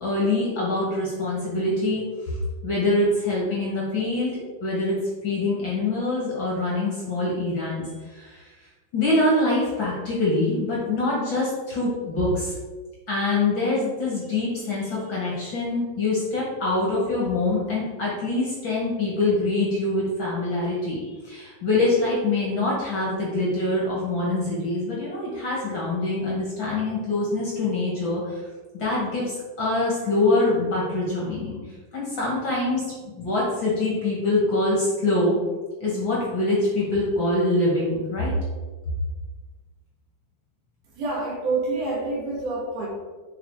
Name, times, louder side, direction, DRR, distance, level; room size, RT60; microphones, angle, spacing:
voice 1, 0.0-2.4 2.6-4.3 4.6-5.0 5.2-8.5 8.9-12.5 13.1-28.4 28.8-29.3 29.6-31.6 31.9-32.8 33.2-35.4 35.8-38.3, left 2 dB, 45° left, -5 dB, 1.7 m, -24 dB
voice 2, 40.9-42.9, right 3 dB, 65° right, -5 dB, 3.6 m, -27 dB
8.2 x 4.4 x 5.0 m, 1.3 s
omnidirectional pair, 4.9 m